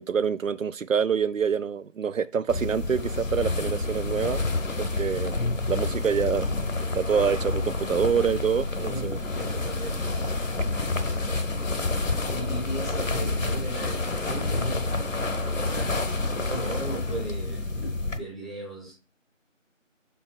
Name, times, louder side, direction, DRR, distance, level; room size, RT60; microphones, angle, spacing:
voice 1, 0.0-4.4 4.8-6.5 6.9-9.2, right 7 dB, 85° right, 0.5 m, -26 dB
sound 1, 2.5-18.2, left 2 dB, 85° left, 1.0 m, -28 dB
voice 2, 8.8-10.2 11.0-11.4 12.1-14.9 15.4-18.9, right 1 dB, ahead, 0.9 m, -37 dB
6.1 x 3.6 x 4.3 m
figure-of-eight pair, 175°, 38 cm